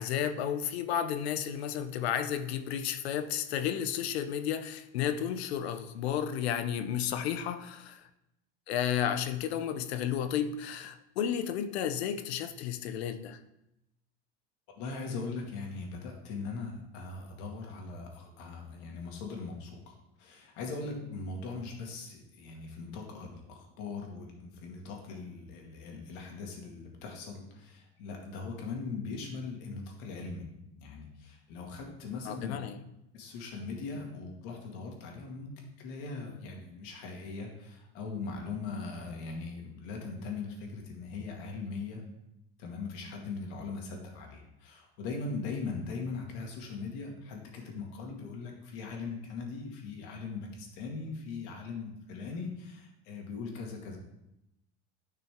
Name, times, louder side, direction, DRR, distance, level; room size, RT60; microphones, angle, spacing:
voice 1, 0.0-8.0 8.7-13.4 32.3-32.8, left 9 dB, 90° left, 0.8 m, -32 dB
voice 2, 14.8-24.3 24.6-30.4 30.8-32.6 33.1-35.5 35.8-42.0 42.6-54.0, left 4 dB, 70° left, 2.2 m, -40 dB
10.5 x 5.8 x 3.7 m
supercardioid pair, 110°, 31 cm